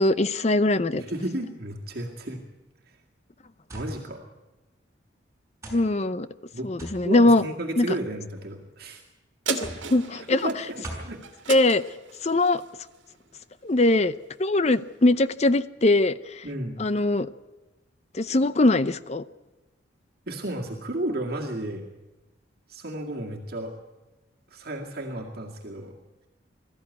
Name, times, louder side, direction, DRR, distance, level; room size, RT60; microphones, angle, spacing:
voice 1, 0.0-1.0 5.7-6.3 6.6-7.4 7.8-7.9 9.5-10.5 11.5-11.8 12.2-12.6 13.6-14.1 14.4-16.4 16.8-17.3 18.1-19.2, left 2 dB, 35° left, 14 dB, 0.6 m, -21 dB
voice 2, 0.9-2.4 3.7-4.2 6.5-6.7 7.0-9.0 10.1-11.2 16.4-16.8 20.3-21.9 22.7-23.7 24.5-26.0, right 1 dB, 55° right, 0 dB, 2.1 m, -33 dB
sound 1, 3.7-3.9 4.8-4.9 5.6-5.9 6.8-7.0 8.0-8.5 9.6-9.9 10.8-11.1, right 1 dB, 15° right, 5.9 m, -38 dB
sound 2, 9.5-14.2 14.7-14.8, right 6 dB, 85° right, 1.8 m, -37 dB
21.0 x 14.0 x 9.6 m, 1.1 s
head